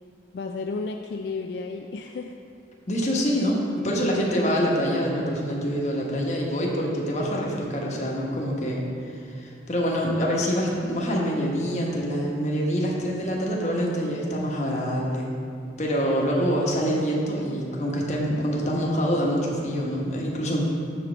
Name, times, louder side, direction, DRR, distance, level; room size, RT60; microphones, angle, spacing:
voice 1, 0.3-2.4, left 4 dB, 70° left, 4 dB, 0.3 m, -32 dB
voice 2, 2.9-15.3 15.8-20.6, equal, 40° left, -2 dB, 1.1 m, -25 dB
6.8 x 4.5 x 6.1 m, 2.5 s
head